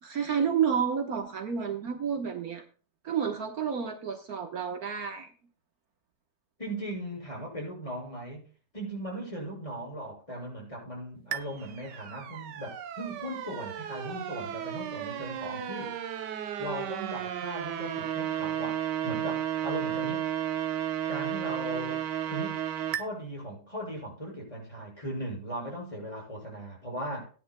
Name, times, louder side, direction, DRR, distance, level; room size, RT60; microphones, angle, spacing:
voice 1, 0.0-2.6 3.0-5.3, right 7 dB, 60° right, 4 dB, 1.6 m, -30 dB
voice 2, 6.6-8.5 8.7-15.9 16.4-20.3 21.1-22.6 22.9-27.3, right 1 dB, 20° left, -1 dB, 6.4 m, -38 dB
sound 1, 11.3-23.0, right 10 dB, 80° right, 1.5 m, -33 dB
18.5 x 10.5 x 2.2 m, 0.38 s
omnidirectional pair, 1.8 m